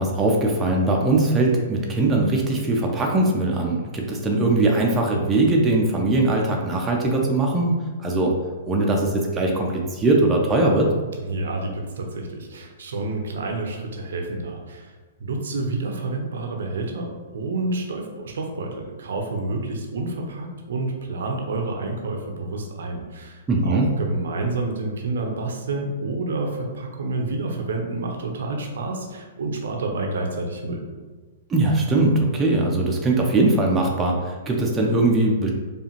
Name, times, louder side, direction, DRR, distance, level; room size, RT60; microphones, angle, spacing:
voice 1, 0.0-7.7 8.0-8.3 8.7-10.9 23.5-23.9 31.5-35.5, right 2 dB, 15° right, -1 dB, 0.5 m, -20 dB
voice 2, 11.2-14.9 15.2-30.8, right 2 dB, 60° right, 2 dB, 0.6 m, -29 dB
4.7 x 2.5 x 3.0 m, 1.4 s
figure-of-eight pair, 110°, 0 cm